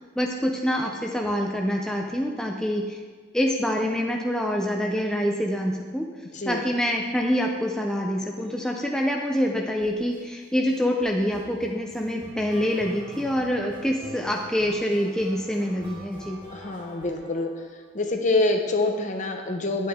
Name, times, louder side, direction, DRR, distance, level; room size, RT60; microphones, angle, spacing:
voice 1, 0.2-3.0 3.3-6.1 6.5-16.4, equal, 5° left, 0 dB, 0.6 m, -26 dB
sound 1, 9.8-10.2 10.7-17.9, equal, 25° right, 2.1 m, -45 dB
voice 2, 16.5-17.5 17.9-19.9, left 2 dB, 40° left, 4 dB, 0.9 m, -25 dB
9.9 x 8.6 x 3.6 m, 1.5 s
head